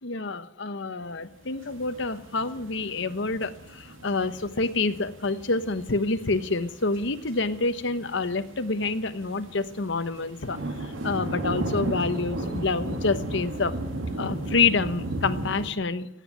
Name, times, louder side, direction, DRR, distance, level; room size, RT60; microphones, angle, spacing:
voice 1, 0.0-13.7 14.2-16.1, left 3 dB, 65° left, 11 dB, 1.1 m, -27 dB
sound 1, 1.4-15.7, right 1 dB, 80° right, 2.1 m, -35 dB
16.0 x 9.3 x 9.4 m, 0.81 s
head